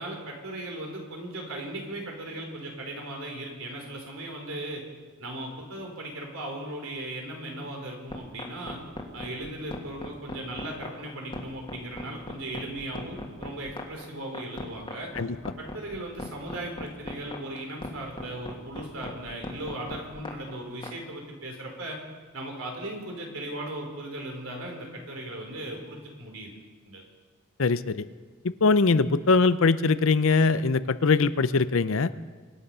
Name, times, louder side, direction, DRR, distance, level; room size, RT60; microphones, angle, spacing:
voice 1, 0.0-4.8 5.2-8.8 9.1-15.1 15.6-22.0 22.3-26.5 26.8-27.0, right 1 dB, 75° right, 1 dB, 4.1 m, -37 dB
sound 1, 8.1-20.9, left 1 dB, 25° left, 1.8 m, -38 dB
voice 2, 27.6-28.0 28.6-32.1, left 4 dB, 70° left, 14 dB, 0.6 m, -22 dB
25.0 x 10.5 x 5.6 m, 1.4 s
head